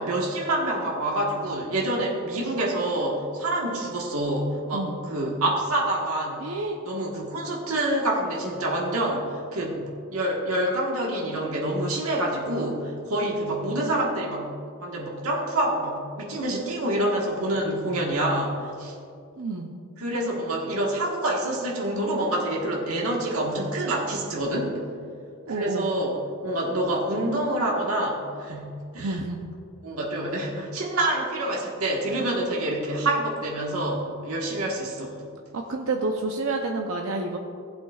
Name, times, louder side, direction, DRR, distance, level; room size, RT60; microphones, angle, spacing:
voice 1, 0.0-6.4 6.8-9.8 10.1-14.5 14.8-18.9 20.0-24.7 25.5-26.2 26.4-29.2 29.8-35.2, right 1 dB, 85° right, -3 dB, 1.4 m, -27 dB
voice 2, 6.4-6.8 19.4-19.7 25.5-25.9 29.0-29.4 35.5-37.4, right 3 dB, 70° right, 2 dB, 0.6 m, -29 dB
16.0 x 7.9 x 2.4 m, 2.4 s
head